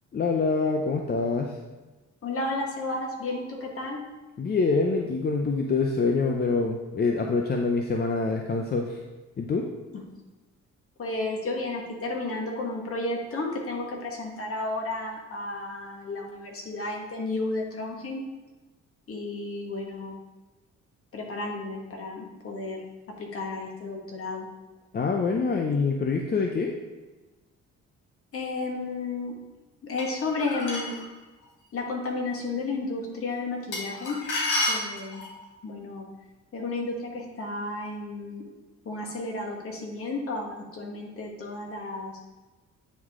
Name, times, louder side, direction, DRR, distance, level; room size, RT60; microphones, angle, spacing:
voice 1, 0.1-1.5 4.4-9.0 9.4-9.7 24.9-26.7, left 4 dB, 35° left, 2 dB, 0.5 m, -25 dB
voice 2, 2.2-4.0 9.9-10.0 11.0-18.2 19.1-20.1 21.1-22.8 23.2-24.5 28.3-29.3 29.8-31.0 31.7-34.2 34.6-35.2 35.6-36.1 36.5-38.4 38.8-42.2, left 2 dB, 50° left, 0 dB, 1.5 m, -32 dB
sound 1, 30.0-31.0 33.7-35.4, left 2 dB, 85° left, 1.8 m, -30 dB
9.3 x 3.1 x 3.6 m, 1.2 s
cardioid pair, 90°, 30 cm